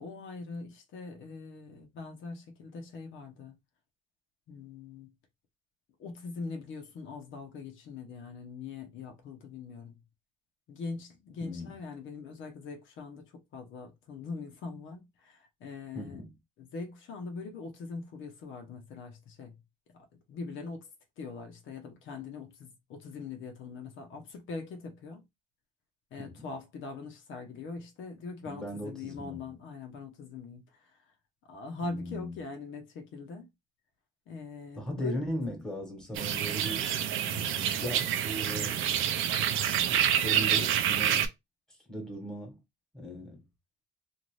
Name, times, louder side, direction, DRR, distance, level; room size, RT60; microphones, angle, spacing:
voice 1, 0.0-3.6 4.5-5.1 6.0-10.0 10.7-16.3 16.6-19.5 20.3-20.9 21.2-25.2 26.1-31.1 31.5-33.5 34.3-35.2 36.1-36.3, left 4 dB, 80° left, 0.8 m, -42 dB
voice 2, 11.4-11.7 15.9-16.3 26.2-26.4 28.4-29.4 31.8-32.3 34.8-36.9 37.2-38.8 39.9-41.3 41.9-42.6 42.9-43.4, equal, 5° left, 1.3 m, -38 dB
sound 1, 36.1-41.3, right 10 dB, 85° right, 0.5 m, -28 dB
2.7 x 2.5 x 3.1 m
cardioid pair, 90°, 20 cm